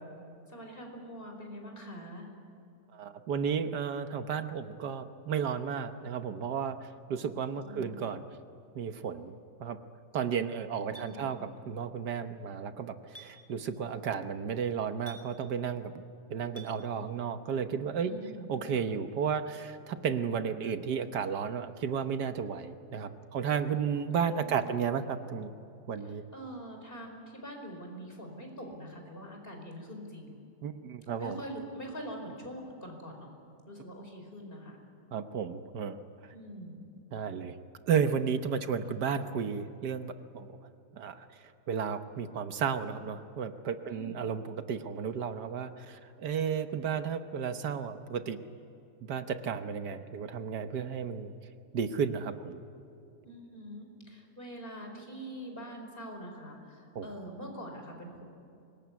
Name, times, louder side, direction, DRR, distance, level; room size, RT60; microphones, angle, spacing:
voice 1, 0.5-2.3 7.5-8.0 10.8-11.3 18.0-18.6 24.4-24.7 26.0-30.4 31.2-33.3 33.7-34.8 36.3-36.8 43.9-44.2 53.2-58.2, equal, 30° left, 2 dB, 5.1 m, -44 dB
voice 2, 2.9-8.2 8.7-9.4 9.6-9.8 10.1-16.0 16.3-18.1 18.5-25.5 25.9-26.2 30.6-31.4 35.1-36.0 36.2-36.3 37.1-37.6 37.9-40.6 40.9-41.3 41.7-48.4 49.0-51.3 51.7-52.6 56.9-57.1, right 7 dB, 75° right, 9 dB, 1.6 m, -33 dB
Chink clink, 10.9-11.1 13.1-13.3 15.1-15.2 16.6-16.7, right 3 dB, 5° left, 4.7 m, -47 dB
25.0 x 21.5 x 9.5 m, 2.7 s
omnidirectional pair, 1.8 m